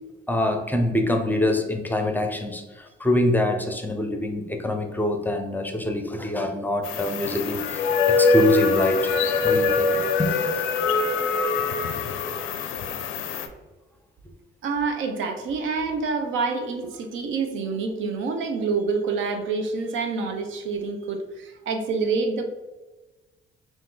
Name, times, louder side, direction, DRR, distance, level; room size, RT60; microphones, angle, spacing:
voice 1, 0.3-9.1 9.4-10.3, left 1 dB, 10° left, 4 dB, 0.5 m, -25 dB
sound 1, 6.8-13.5, left 4 dB, 90° left, 0.4 m, -23 dB
voice 2, 14.6-22.4, right 4 dB, 80° right, 6 dB, 0.6 m, -27 dB
3.6 x 2.5 x 3.7 m, 1.2 s
cardioid pair, 90°, 20 cm